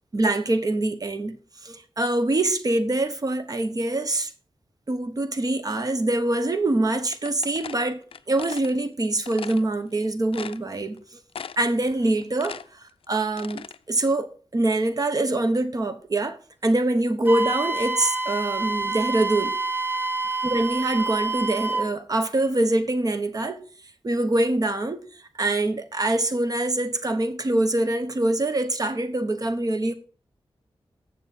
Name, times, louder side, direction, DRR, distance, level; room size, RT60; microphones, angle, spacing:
voice 1, 0.1-4.3 4.9-11.2 11.6-12.6 13.1-19.6 20.4-23.6 24.0-25.1 25.4-29.9, right 2 dB, 40° right, 1.1 m, -24 dB
sound 1, 7.1-8.7 9.2-9.6 10.0-10.1 10.3-11.0 11.3-11.8 12.1-13.8, left 7 dB, 70° left, 0.4 m, -38 dB
Wind instrument woodwind instrument, 17.2-21.9, right 3 dB, 20° right, 0.9 m, -27 dB
7.9 x 6.9 x 5.4 m
wide cardioid pair, 100°, 10 cm